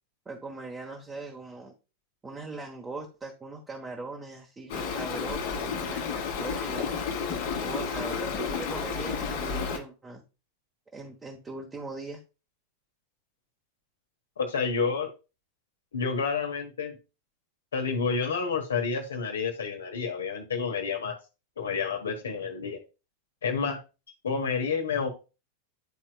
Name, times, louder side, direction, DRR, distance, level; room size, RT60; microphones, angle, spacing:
voice 1, 0.2-1.7 2.2-6.9 7.6-10.2 10.9-12.2, right 3 dB, 15° right, 1 dB, 1.1 m, -40 dB
Stream, 4.7-9.8, left 5 dB, 50° left, 1.4 m, -31 dB
voice 2, 14.4-15.1 15.9-17.0 17.7-21.2 21.6-22.8 23.4-23.8 24.2-25.1, left 5 dB, 65° left, 4 dB, 1.2 m, -29 dB
10.5 x 4.4 x 2.3 m, 0.31 s
figure-of-eight pair, 90°, 0 cm